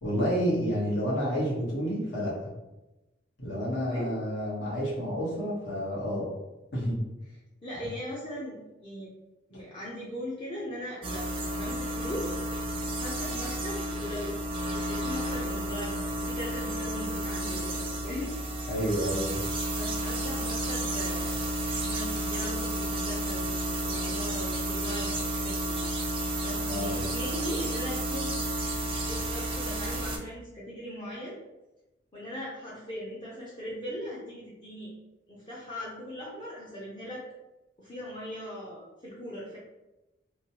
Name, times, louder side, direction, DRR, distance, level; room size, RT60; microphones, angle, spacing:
voice 1, 0.0-2.3 3.4-6.3 6.7-7.0 18.7-19.4 26.7-27.0, equal, 75° left, -6 dB, 1.2 m, -29 dB
voice 2, 3.9-4.3 7.6-9.1 9.5-12.4 13.0-18.3 18.8-19.0 19.8-26.1 26.4-28.4 29.1-31.4 32.1-34.9 35.3-37.2 37.8-39.6, equal, 25° left, -6 dB, 0.5 m, -39 dB
sound 1, 11.0-30.2, right 1 dB, 30° right, 0.4 m, -32 dB
3.1 x 2.2 x 2.8 m, 0.99 s
head